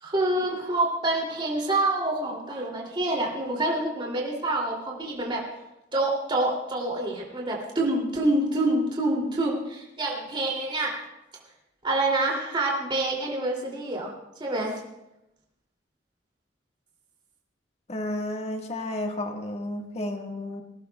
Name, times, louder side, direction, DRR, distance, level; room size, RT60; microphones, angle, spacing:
voice 1, 0.0-5.4 5.9-10.9 11.8-14.1 14.4-14.7, right 2 dB, 30° right, -2 dB, 2.8 m, -27 dB
voice 2, 17.9-20.6, left 1 dB, 35° left, 2 dB, 1.6 m, -32 dB
21.0 x 17.5 x 2.3 m, 0.92 s
head